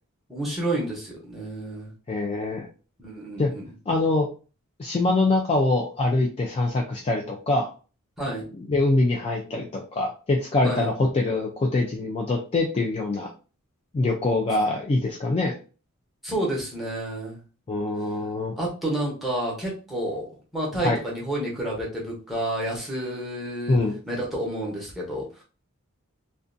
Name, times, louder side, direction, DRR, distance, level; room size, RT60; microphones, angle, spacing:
voice 1, 0.3-1.9 3.0-3.6 8.2-8.4 10.6-10.9 16.2-17.4 18.6-23.8 24.1-25.2, right 1 dB, ahead, -5 dB, 0.9 m, -30 dB
voice 2, 2.1-2.7 3.4-3.5 3.9-4.3 4.8-7.7 8.6-13.3 13.9-15.5 17.7-18.5 20.8-21.0 23.7-23.9, left 2 dB, 30° left, 0 dB, 0.3 m, -24 dB
2.4 x 2.2 x 2.5 m, 0.35 s
head